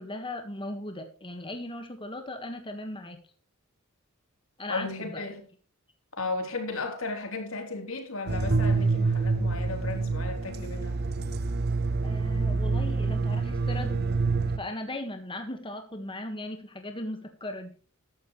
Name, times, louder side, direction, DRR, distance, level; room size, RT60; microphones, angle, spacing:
voice 1, 0.0-3.2 4.6-5.2 12.0-14.0 14.6-17.7, left 1 dB, 25° left, 1.7 m, -37 dB
voice 2, 4.7-5.4 6.2-11.0, left 3 dB, 75° left, 3.7 m, -35 dB
sound 1, 8.3-14.6, right 3 dB, 50° right, 0.9 m, -27 dB
15.0 x 12.0 x 3.3 m
head